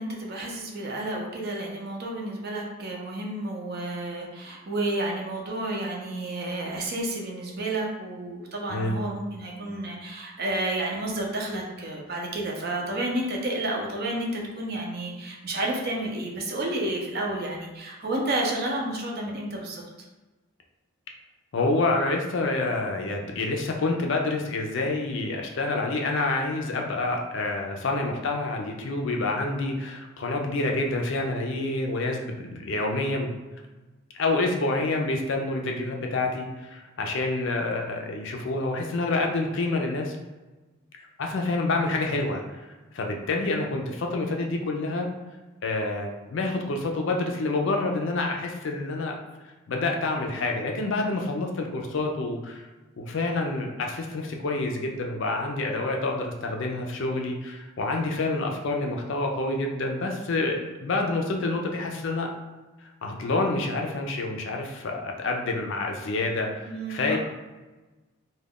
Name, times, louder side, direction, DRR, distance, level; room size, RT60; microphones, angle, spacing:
voice 1, 0.0-19.8 66.7-67.2, right 1 dB, 45° right, -1 dB, 0.5 m, -31 dB
voice 2, 21.5-33.3 34.1-40.2 41.2-42.7 42.9-45.1 45.6-49.1 49.7-52.7 53.0-62.3 62.8-67.2, left 2 dB, 55° left, 2 dB, 0.4 m, -28 dB
2.3 x 2.2 x 3.5 m, 1.2 s
head